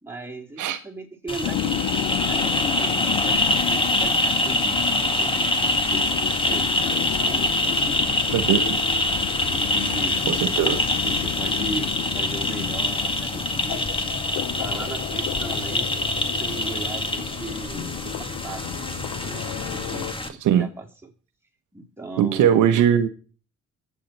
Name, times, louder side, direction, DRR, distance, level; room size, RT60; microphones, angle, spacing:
voice 1, 0.0-2.0 2.3-6.1 6.5-8.7 9.5-10.2 10.9-13.8 14.5-15.9 16.3-21.1 21.7-22.8, right 2 dB, 10° right, 3.4 m, -37 dB
sound 1, 1.3-20.3, left 2 dB, 15° left, 2.0 m, -25 dB
sound 2, 1.4-20.1, left 14 dB, 75° left, 0.6 m, -32 dB
voice 2, 10.3-10.8 20.4-20.7 22.2-23.1, right 9 dB, 80° right, 1.1 m, -19 dB
24.5 x 8.3 x 4.4 m
supercardioid pair, 70°, 30 cm